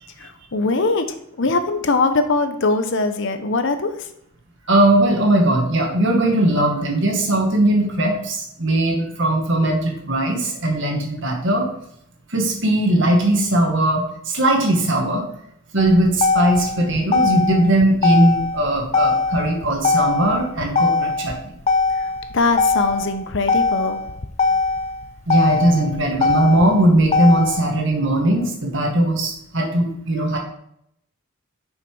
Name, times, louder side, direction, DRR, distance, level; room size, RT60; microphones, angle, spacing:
voice 1, 0.2-1.1 1.4-4.1 22.0-24.0, left 3 dB, 60° left, 8 dB, 0.8 m, -21 dB
voice 2, 4.7-11.7 12.3-15.2 15.7-21.5 25.3-30.4, right 1 dB, 60° right, 1 dB, 1.8 m, -19 dB
Motor vehicle (road), 15.8-27.8, left 4 dB, 30° left, 0.5 m, -21 dB
6.6 x 6.0 x 4.8 m, 0.73 s
head